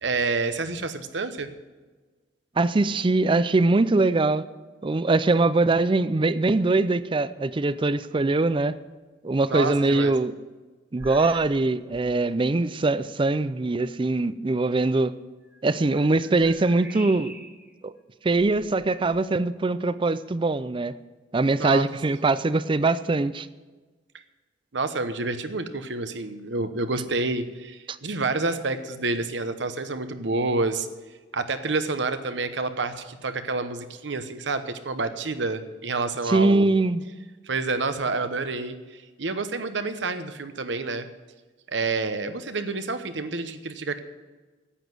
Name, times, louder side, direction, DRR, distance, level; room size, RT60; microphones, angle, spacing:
voice 1, 0.0-1.5 9.5-10.1 21.6-22.1 24.7-30.9 31.3-36.7 37.4-41.1 41.7-44.0, right 3 dB, 75° right, 10 dB, 1.0 m, -28 dB
voice 2, 2.6-4.4 4.8-8.8 9.2-10.3 10.9-15.1 15.6-17.3 17.8-17.9 18.2-21.0 21.3-23.5 27.9-28.0 36.3-37.0, right 3 dB, 30° right, 15 dB, 0.4 m, -22 dB
sound 1, 11.0-11.6 11.9-12.2 12.9-13.0 15.4-17.7 18.3-19.3, right 1 dB, 10° right, 1.7 m, -45 dB
10.0 x 8.3 x 9.2 m, 1.3 s
head